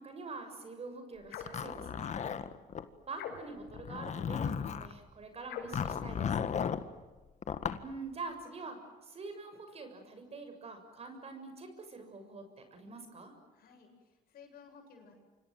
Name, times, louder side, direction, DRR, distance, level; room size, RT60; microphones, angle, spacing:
voice 1, 0.0-2.2 3.1-6.4 7.8-13.3, right 3 dB, 35° right, 6 dB, 6.9 m, -45 dB
sound 1, 1.3-1.7 3.1-3.7 5.4-5.9, left 7 dB, 85° left, 5.4 m, -43 dB
Zipper (clothing), 1.3-2.9 3.7-4.9 5.7-6.8 7.4-7.8, left 7 dB, 45° left, 1.8 m, -35 dB
voice 2, 13.5-15.2, left 6 dB, 65° left, 4 dB, 7.9 m, -56 dB
29.0 x 26.0 x 7.8 m, 1.2 s
cardioid pair, 110°, 17 cm